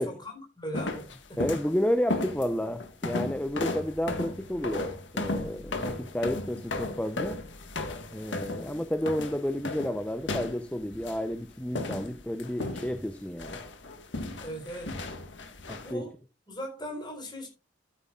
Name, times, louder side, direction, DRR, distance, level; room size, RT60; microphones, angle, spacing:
voice 1, 0.0-1.5 14.4-15.0 15.8-16.1 16.5-17.5, equal, 25° left, 4.1 m, -39 dB
sound 1, 0.7-1.7 2.1-11.3 11.8-13.1 13.4-15.9, left 2 dB, 75° left, 1.7 m, -35 dB
voice 2, 1.4-7.4 8.1-13.6 15.7-16.0, equal, 5° left, 0.7 m, -31 dB
13.0 x 9.2 x 2.5 m
head